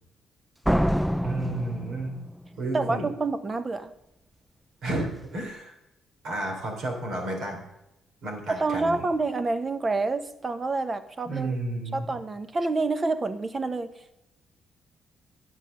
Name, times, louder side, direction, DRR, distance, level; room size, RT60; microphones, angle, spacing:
Slam, 0.7-2.6, equal, 5° right, 0.4 m, -26 dB
voice 1, 1.2-2.1 2.6-3.1 4.8-5.7 6.2-7.6 8.2-9.1 11.3-12.1, right 2 dB, 75° right, 1 dB, 3.5 m, -31 dB
voice 2, 2.7-3.9 8.5-11.6 11.9-13.9, right 3 dB, 30° right, 11 dB, 1.0 m, -28 dB
11.0 x 7.2 x 6.6 m, 0.91 s
cardioid pair, 90°, 0 cm